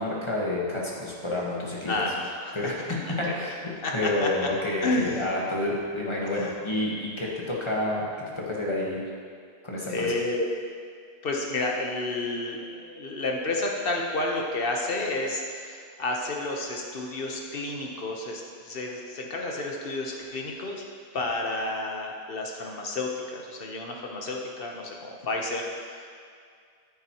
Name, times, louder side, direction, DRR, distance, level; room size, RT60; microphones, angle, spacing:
voice 1, 0.0-1.9 2.5-3.6 3.9-8.1 8.4-9.0 9.6-10.1, left 2 dB, 25° left, -4 dB, 1.3 m, -29 dB
voice 2, 1.9-3.5 3.8-4.3 4.8-5.3 6.4-6.5 9.9-10.4 11.2-20.8 21.1-26.1, left 2 dB, 55° left, 0 dB, 1.2 m, -31 dB
9.3 x 9.0 x 3.0 m, 2.2 s
omnidirectional pair, 1.2 m